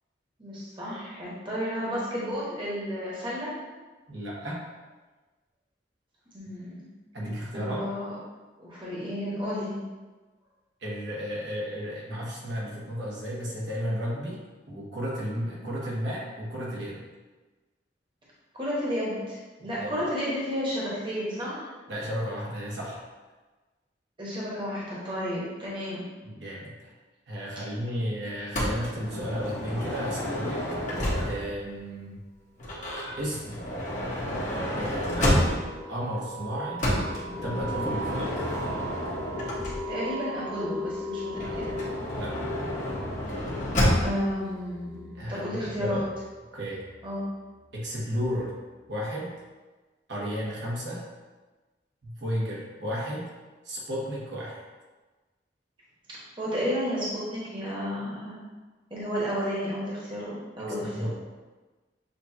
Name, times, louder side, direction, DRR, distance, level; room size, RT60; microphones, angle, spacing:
voice 1, 0.4-3.5 6.3-6.9 7.5-8.2 8.6-9.8 18.5-21.7 24.2-26.0 39.9-41.8 44.0-46.0 47.0-47.3 56.4-58.4 58.9-61.1, equal, 30° right, -7 dB, 1.1 m, -32 dB
voice 2, 4.1-4.6 7.1-7.9 10.8-14.4 14.7-17.0 19.8-19.9 21.9-23.0 26.2-26.7 27.3-30.6 31.2-32.2 33.1-33.6 34.8-36.9 37.4-38.3 42.1-42.3 45.1-46.0 46.5-46.8 47.7-48.5 48.9-49.3 50.1-51.0 52.0-53.3 53.6-54.6 60.6-61.1, equal, 80° right, -5 dB, 1.3 m, -33 dB
Motor vehicle (road) / Sliding door, 28.5-31.6 32.6-35.9 36.8-40.1 41.3-44.3, equal, 45° left, 1.0 m, -29 dB
sound 1, 33.2-47.6, equal, 25° left, 0.3 m, -39 dB
6.8 x 2.4 x 2.8 m, 1.2 s
head